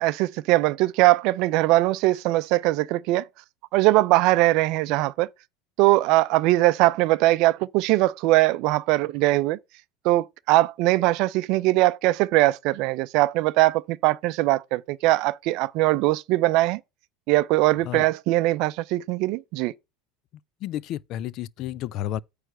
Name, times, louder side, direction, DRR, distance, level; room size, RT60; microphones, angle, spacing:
voice 1, 0.0-3.2 3.7-5.3 5.8-9.6 10.0-16.8 17.3-19.7, right 18 dB, 60° right, 0.5 m, -21 dB
voice 2, 20.6-22.2, left 12 dB, 50° left, 0.4 m, -31 dB
9.1 x 3.3 x 6.1 m
supercardioid pair, 115°, 0 cm